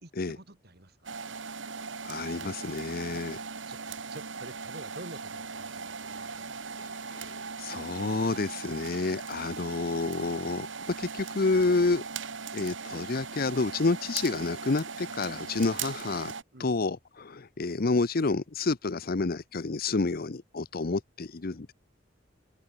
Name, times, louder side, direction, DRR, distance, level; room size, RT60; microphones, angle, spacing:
voice 1, 0.0-1.1 3.7-6.7 11.7-11.8 16.5-16.7, right 2 dB, 55° right, 3.6 m, -48 dB
sound 1, 1.0-16.4, right 5 dB, 80° right, 2.2 m, -39 dB
voice 2, 2.0-3.4 6.8-10.7 11.0-12.0 12.5-16.3 16.6-21.7, left 3 dB, 50° left, 0.7 m, -29 dB
open air
head